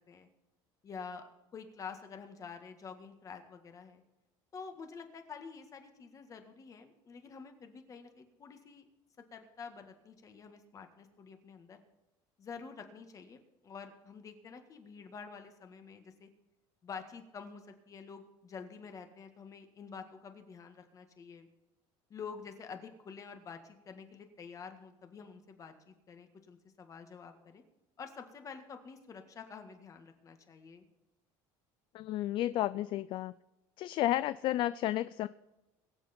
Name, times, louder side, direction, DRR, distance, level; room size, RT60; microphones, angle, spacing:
voice 1, 0.8-1.2 1.5-4.0 4.5-8.9 9.2-11.8 12.4-13.4 13.6-16.3 16.8-21.5 22.1-27.6 28.0-30.8, left 5 dB, 30° left, 6 dB, 1.7 m, -48 dB
voice 2, 31.9-33.3 33.8-35.3, left 14 dB, 50° left, 15 dB, 0.4 m, -32 dB
22.5 x 7.7 x 4.4 m, 1.0 s
cardioid pair, 135°, 11 cm